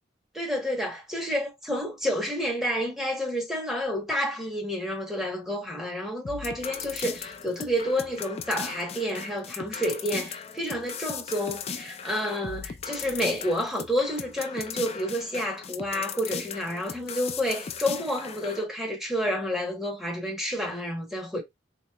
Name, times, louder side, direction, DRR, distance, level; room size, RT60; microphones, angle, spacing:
voice 1, 0.4-21.4, equal, ahead, 1.0 m, -29 dB
sound 1, 6.2-18.6, left 6 dB, 35° left, 0.4 m, -38 dB
4.1 x 3.0 x 2.2 m
head